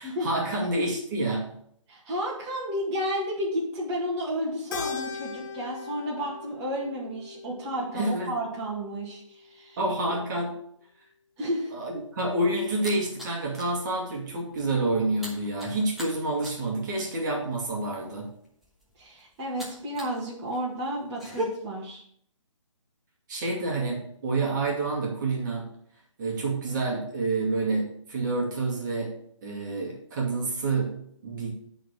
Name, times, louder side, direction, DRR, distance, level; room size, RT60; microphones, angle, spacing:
voice 1, 0.0-1.5 7.9-8.3 9.8-10.6 11.7-18.3 23.3-25.7 26.2-31.5, right 2 dB, 35° right, -2 dB, 2.0 m, -28 dB
voice 2, 1.9-9.8 10.1-10.2 11.4-11.7 19.0-22.0, equal, 20° right, -5 dB, 1.9 m, -32 dB
Keyboard (musical), 4.7-9.3, left 5 dB, 45° left, 2.0 m, -39 dB
sound 1, 12.0-13.8 14.1-14.4 14.6-20.2 20.5-21.4, right 1 dB, ahead, 1.2 m, -40 dB
9.1 x 4.0 x 6.6 m, 0.66 s
hypercardioid pair, 150°, 16 cm